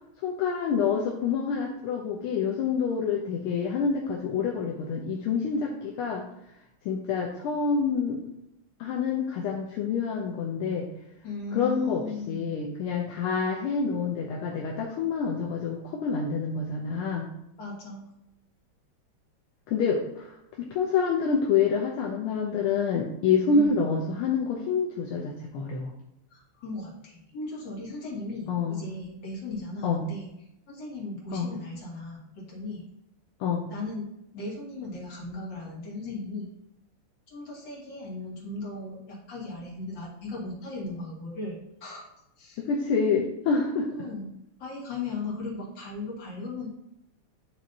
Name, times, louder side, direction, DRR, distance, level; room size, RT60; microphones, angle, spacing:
voice 1, 0.2-6.2 6.8-8.2 8.8-10.9 11.5-17.3 19.7-20.3 20.7-25.9 28.5-28.8 29.8-30.0 31.3-31.5 33.4-33.6 42.6-44.1, left 5 dB, 80° left, -1 dB, 1.7 m, -27 dB
voice 2, 11.2-12.4 17.6-18.1 23.5-23.8 26.3-30.3 30.7-32.8 33.7-34.1 34.3-36.5 37.3-42.0 42.4-42.6 43.9-44.3 44.6-46.7, left 3 dB, 55° left, -4 dB, 2.6 m, -37 dB
9.3 x 3.2 x 4.0 m, 0.83 s
omnidirectional pair, 2.4 m